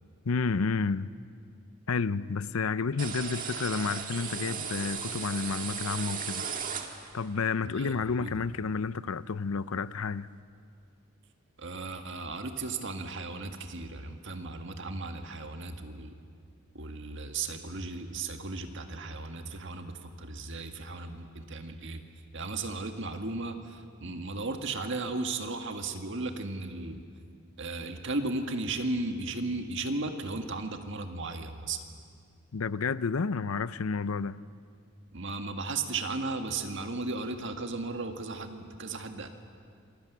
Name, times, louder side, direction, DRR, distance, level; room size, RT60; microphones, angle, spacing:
voice 1, 0.2-1.1 1.9-6.5 7.1-10.3 32.5-34.4, left 4 dB, 85° left, 0.6 m, -30 dB
sound 1, 3.0-7.3, right 7 dB, 40° right, 1.9 m, -36 dB
voice 2, 7.6-7.9 8.2-8.4 11.6-16.1 16.7-22.0 22.3-27.0 27.6-31.8 35.1-39.3, right 3 dB, 60° right, 1.9 m, -35 dB
27.5 x 21.0 x 8.2 m
head